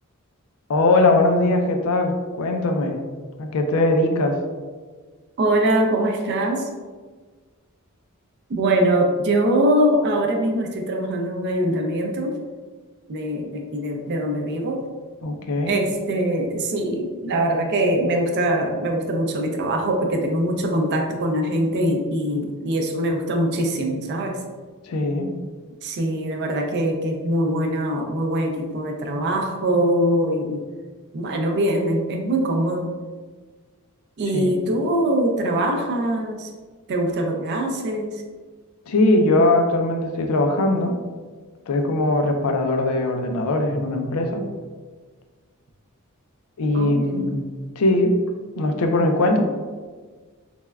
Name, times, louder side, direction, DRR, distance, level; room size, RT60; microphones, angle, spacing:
voice 1, 0.7-3.0 3.4-4.4 15.2-15.7 24.8-25.3 34.3-34.6 38.9-41.0 41.7-44.4 46.6-47.4 47.8-48.2 48.6-49.5, left 2 dB, 75° left, 4 dB, 0.4 m, -20 dB
voice 2, 5.4-6.7 8.5-12.4 13.1-14.8 15.7-24.4 25.8-30.6 31.1-32.9 34.2-36.5 36.9-38.2 46.7-47.4, right 1 dB, 50° right, 3 dB, 0.4 m, -23 dB
3.3 x 2.1 x 2.2 m, 1.4 s
head